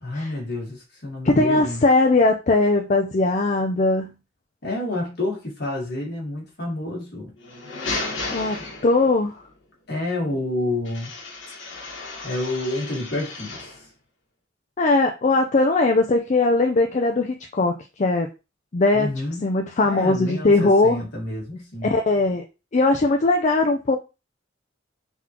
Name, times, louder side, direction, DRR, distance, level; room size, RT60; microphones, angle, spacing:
voice 1, 0.0-1.9 4.6-7.3 9.9-11.1 12.2-13.9 18.9-19.5 19.8-22.0, left 1 dB, 55° left, 1.6 m, -29 dB
voice 2, 1.2-4.1 8.3-8.6 8.8-9.3 14.8-18.3 18.7-19.1 19.4-21.0 21.8-22.4 22.7-24.0, left 2 dB, 40° left, 0.5 m, -19 dB
sound 1, 7.4-9.3 10.8-13.8, left 3 dB, 75° left, 1.3 m, -34 dB
3.9 x 3.7 x 2.9 m
head